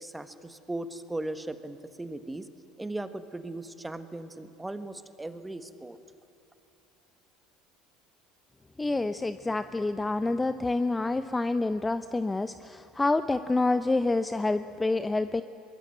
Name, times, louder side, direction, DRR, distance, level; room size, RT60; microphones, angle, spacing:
voice 1, 0.0-2.5 2.8-6.0, right 2 dB, 10° right, 10 dB, 1.5 m, -38 dB
voice 2, 8.8-15.4, left 2 dB, 15° left, 12 dB, 0.6 m, -27 dB
23.5 x 22.5 x 8.0 m, 2.7 s
figure-of-eight pair, 65°, 0 cm